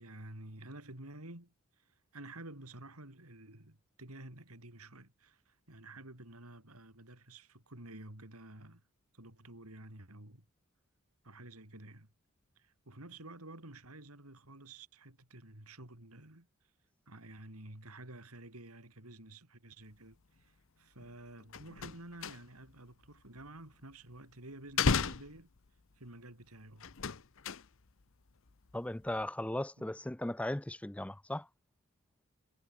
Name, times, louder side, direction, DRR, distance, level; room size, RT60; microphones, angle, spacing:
voice 1, 0.0-8.8 9.1-10.5 11.2-12.1 12.6-16.5 17.1-25.5 26.0-27.0 29.8-29.9, right 2 dB, 90° right, 5.1 m, -51 dB
sound 1, 21.0-21.1 21.4-22.8 23.0-24.2 24.6-26.0 26.8-28.0 28.3-28.7 29.0-29.2, left 5 dB, 65° left, 0.9 m, -35 dB
voice 2, 28.7-31.5, left 1 dB, 5° left, 0.4 m, -37 dB
head